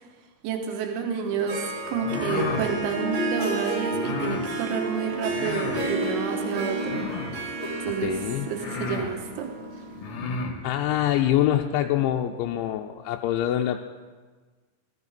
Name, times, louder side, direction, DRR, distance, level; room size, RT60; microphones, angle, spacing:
voice 1, 0.4-7.0 7.8-8.2 8.5-9.5, right 6 dB, 80° right, 3 dB, 3.6 m, -29 dB
Harp, 1.2-10.2, right 1 dB, 45° right, 2.8 m, -32 dB
sound 1, 1.9-2.7 3.9-4.5 5.3-5.9 6.9-7.5 8.1-8.2 8.6-9.1 9.9-10.6, left 4 dB, 60° left, 2.3 m, -32 dB
voice 2, 8.0-8.5 10.6-13.8, left 12 dB, 90° left, 2 dB, 2.9 m, -25 dB
17.0 x 13.5 x 4.2 m, 1.4 s
omnidirectional pair, 5.3 m